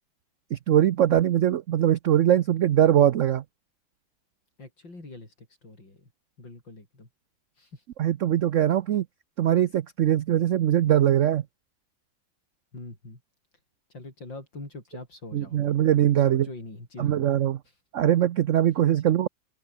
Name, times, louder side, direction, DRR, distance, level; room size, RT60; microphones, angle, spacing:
voice 1, 0.5-3.4 8.0-9.1 9.4-11.4 15.3-16.5 17.0-17.6 17.9-19.3, right 11 dB, 80° right, 0.6 m, -21 dB
voice 2, 4.6-6.1 6.4-7.1 7.5-7.9 12.7-13.2 13.9-15.8 16.2-17.3 17.6-17.8 18.7-19.0, left 2 dB, 70° left, 8.2 m, -44 dB
open air
omnidirectional pair, 2.1 m